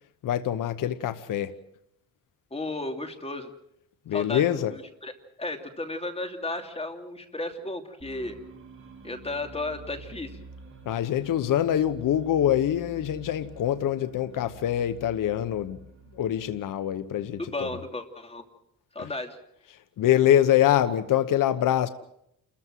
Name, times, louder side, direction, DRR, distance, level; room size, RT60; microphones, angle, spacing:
voice 1, 0.2-1.5 4.1-4.7 10.8-15.8 16.1-17.7 19.0-19.1 20.0-21.9, left 11 dB, 60° left, 1.1 m, -24 dB
voice 2, 2.5-3.5 4.1-5.1 5.4-8.4 9.0-10.4 17.4-18.4 18.9-19.4, left 2 dB, 15° left, 2.9 m, -34 dB
sound 1, 8.0-17.6, right 3 dB, 35° right, 7.3 m, -48 dB
29.0 x 14.5 x 7.6 m
cardioid pair, 105°, 36 cm